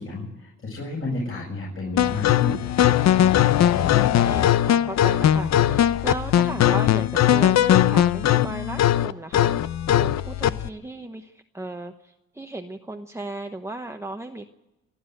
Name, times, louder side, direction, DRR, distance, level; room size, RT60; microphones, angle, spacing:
voice 1, 0.0-2.7, left 2 dB, 45° left, -3 dB, 7.3 m, -31 dB
sound 1, 2.0-10.7, left 11 dB, 60° left, 0.8 m, -19 dB
voice 2, 3.6-9.6 10.0-14.5, right 2 dB, 10° right, 4 dB, 1.0 m, -36 dB
28.0 x 10.0 x 9.3 m, 0.99 s
cardioid pair, 90°, 30 cm